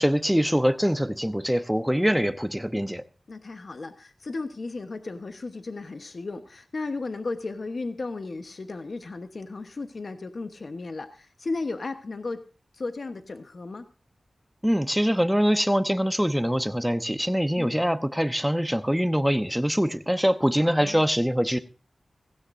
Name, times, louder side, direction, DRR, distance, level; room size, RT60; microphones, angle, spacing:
voice 1, 0.0-3.0 14.6-21.6, equal, 5° right, 0.9 m, -24 dB
voice 2, 3.3-12.4 12.7-13.9 17.6-17.7 20.6-21.0, left 3 dB, 55° left, 1.1 m, -35 dB
16.5 x 16.5 x 2.6 m
wide cardioid pair, 80°, 0 cm